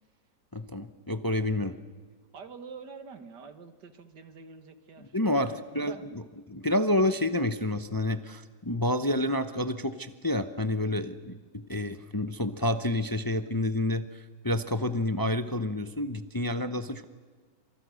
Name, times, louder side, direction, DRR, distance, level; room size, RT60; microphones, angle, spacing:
voice 1, 0.5-1.8 5.0-11.4 11.7-17.0, left 1 dB, 20° left, 10 dB, 0.7 m, -29 dB
voice 2, 2.3-6.0, right 4 dB, 75° right, 10 dB, 2.4 m, -46 dB
28.5 x 26.5 x 6.5 m, 1.4 s
omnidirectional pair, 1.9 m